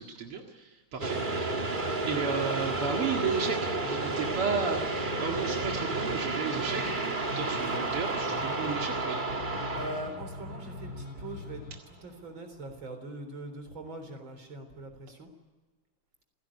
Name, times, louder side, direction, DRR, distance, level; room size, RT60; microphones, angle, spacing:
voice 1, 0.0-1.6 2.1-6.9 7.4-9.3, right 5 dB, 85° right, 1 dB, 2.9 m, -33 dB
sound 1, 1.0-11.2, right 3 dB, 25° right, 1.5 m, -32 dB
voice 2, 1.0-1.3 7.5-7.8 9.7-15.3, right 1 dB, 65° right, 7 dB, 4.6 m, -42 dB
sound 2, 4.8-11.8, left 3 dB, 60° left, 2.5 m, -43 dB
28.5 x 17.0 x 10.0 m, 1.3 s
omnidirectional pair, 2.4 m